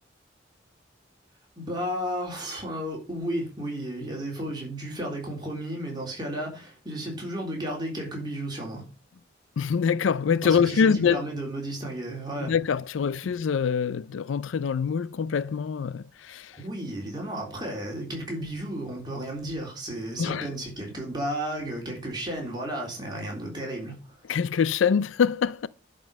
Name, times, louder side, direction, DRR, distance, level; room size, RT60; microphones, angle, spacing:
voice 1, 1.6-8.8 10.4-12.5 16.6-24.2, right 1 dB, 20° right, 3.5 m, -33 dB
voice 2, 9.6-11.2 12.4-16.6 20.2-20.5 24.3-25.7, left 6 dB, 80° left, 0.4 m, -24 dB
11.0 x 5.2 x 5.4 m
head